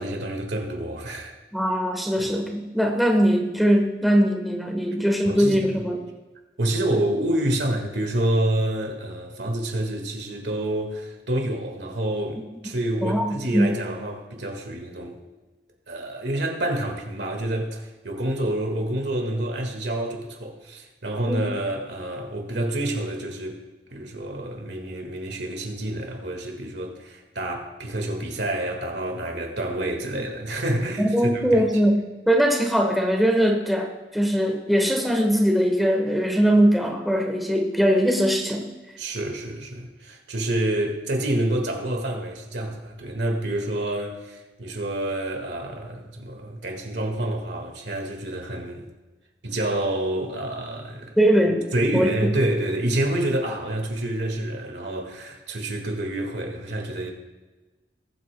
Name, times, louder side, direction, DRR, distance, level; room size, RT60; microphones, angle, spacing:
voice 1, 0.0-1.3 2.2-2.3 5.3-5.7 6.6-15.2 15.9-23.6 23.9-31.6 39.0-48.9 49.4-51.2 51.7-57.1, right 1 dB, 70° right, 1.8 m, -28 dB
voice 2, 1.5-6.0 13.0-13.8 21.3-21.4 31.0-38.6 51.2-51.6 51.9-52.3, equal, ahead, 1.1 m, -21 dB
20.5 x 8.4 x 2.3 m
head